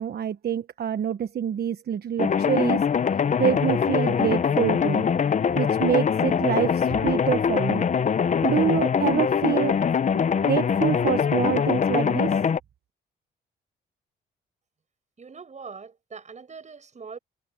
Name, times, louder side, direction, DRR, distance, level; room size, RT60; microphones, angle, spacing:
voice 1, 0.0-2.8 3.4-5.1 5.5-7.9 8.4-9.8 10.1-12.4, right 9 dB, 55° right, 1.1 m, -26 dB
sound 1, 2.2-12.6, left 7 dB, 40° left, 0.8 m, -23 dB
voice 2, 15.2-17.2, right 5 dB, 35° right, 6.4 m, -42 dB
cardioid pair, 90°, 20 cm